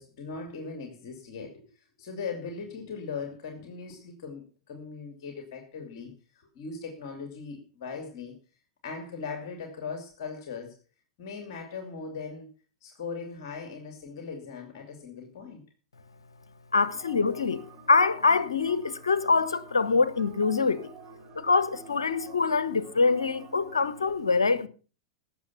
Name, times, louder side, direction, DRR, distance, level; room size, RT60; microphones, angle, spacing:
voice 1, 0.0-8.3 8.8-10.8 11.2-12.5 12.8-15.6, left 5 dB, 55° left, 2.6 m, -39 dB
voice 2, 16.7-20.9 21.3-24.7, left 4 dB, 80° left, 1.1 m, -24 dB
sound 1, 16.7-24.1, right 6 dB, 40° right, 3.3 m, -50 dB
17.5 x 7.0 x 5.8 m
figure-of-eight pair, 95°, 3 cm